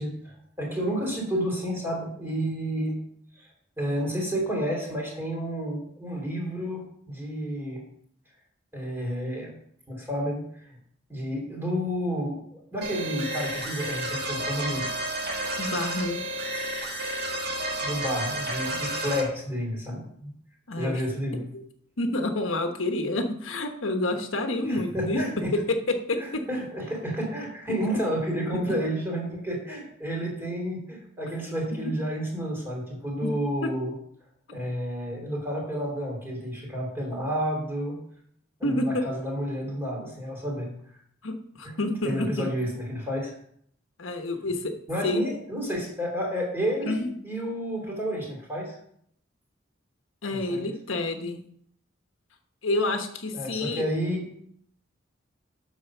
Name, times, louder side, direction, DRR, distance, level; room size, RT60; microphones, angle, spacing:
voice 1, 0.0-3.0 3.3-3.5 3.8-7.8 8.7-9.6 9.9-10.8 11.1-14.9 17.8-20.3 20.8-21.4 24.6-25.5 26.5-34.0 34.5-38.0 38.6-40.7 41.6-41.7 42.0-43.3 44.9-47.0 47.2-48.8 50.3-50.7 53.3-54.3, equal, 10° right, -2 dB, 3.1 m, -30 dB
sound 1, 12.8-19.2, right 1 dB, 55° right, 1.8 m, -31 dB
voice 2, 15.6-16.2 20.7-21.0 22.0-26.4 28.5-28.8 33.2-33.3 33.6-33.7 38.6-39.0 41.2-42.5 44.0-44.7 45.0-45.2 46.9-47.1 50.2-51.4 52.6-53.8, left 2 dB, 85° left, 5 dB, 1.2 m, -28 dB
8.0 x 6.5 x 6.0 m, 0.67 s
head